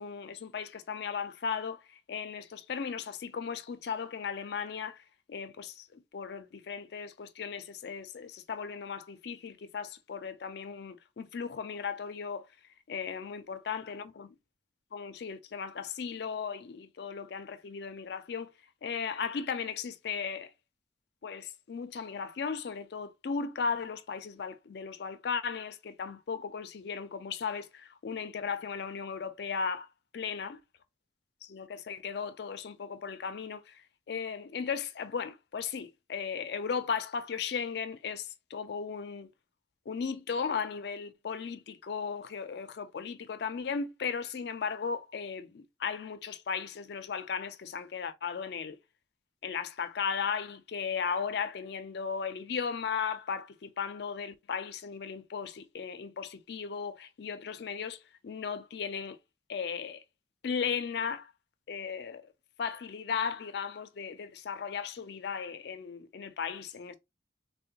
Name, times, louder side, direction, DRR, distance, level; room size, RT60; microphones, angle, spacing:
voice 1, 0.0-1.8 2.1-5.0 5.3-12.5 12.9-14.3 14.9-18.5 18.8-20.5 21.2-29.9 30.1-30.6 31.5-33.7 34.1-39.3 39.9-48.8 49.4-58.0 58.2-59.2 59.5-60.0 60.4-61.3 61.7-62.2 62.6-67.0, left 6 dB, 60° left, 0.4 m, -36 dB
3.4 x 2.1 x 2.8 m
head